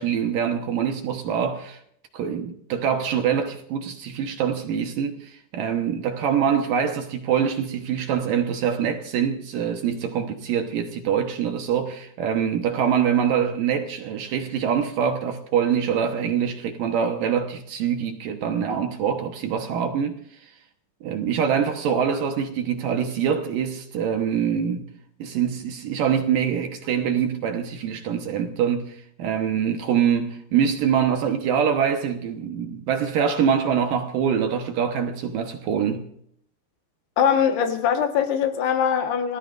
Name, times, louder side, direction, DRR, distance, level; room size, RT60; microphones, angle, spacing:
voice 1, 0.0-1.8 2.1-20.5 21.0-24.8 25.2-36.0, right 8 dB, 65° right, 2.4 m, -24 dB
voice 2, 37.2-39.4, left 8 dB, 75° left, 3.3 m, -22 dB
27.0 x 18.5 x 2.5 m
omnidirectional pair, 4.8 m